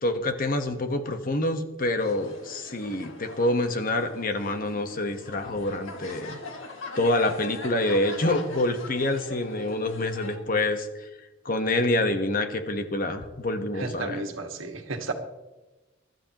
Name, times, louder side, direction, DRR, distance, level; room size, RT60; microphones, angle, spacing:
voice 1, 0.0-6.4 7.0-11.1 11.4-14.2, left 1 dB, 45° left, 7 dB, 1.2 m, -27 dB
sound 1, 2.0-10.4, left 3 dB, 80° left, 2.1 m, -41 dB
voice 2, 13.7-15.1, right 3 dB, 85° right, 5 dB, 1.7 m, -33 dB
23.0 x 12.0 x 3.0 m, 1.1 s
head